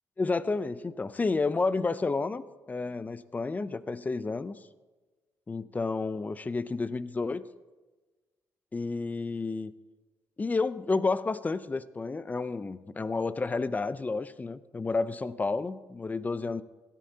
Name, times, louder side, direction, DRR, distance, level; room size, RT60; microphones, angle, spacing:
voice 1, 0.2-4.6 5.5-7.4 8.7-9.7 10.4-16.6, left 3 dB, 25° left, 15 dB, 0.5 m, -31 dB
17.5 x 13.0 x 2.8 m, 1.2 s
cardioid pair, 85°, 7 cm